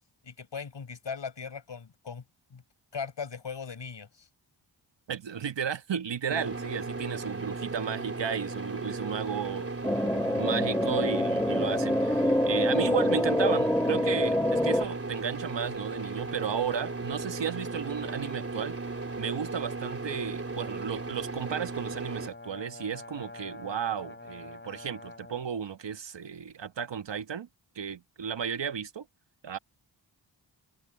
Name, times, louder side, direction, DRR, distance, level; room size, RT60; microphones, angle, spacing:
voice 1, 0.2-2.2 2.5-2.6 2.9-4.3, left 6 dB, 65° left, 6.8 m, -38 dB
voice 2, 5.1-9.7 10.3-18.8 19.2-27.5 27.7-29.0 29.4-29.6, right 7 dB, 65° right, 1.3 m, -34 dB
sound 1, 6.3-22.3, right 3 dB, 30° right, 3.6 m, -36 dB
sound 2, 9.8-14.8, left 1 dB, 5° left, 0.8 m, -26 dB
sound 3, 21.6-25.5, left 2 dB, 25° left, 4.0 m, -46 dB
cardioid pair, 55°, 46 cm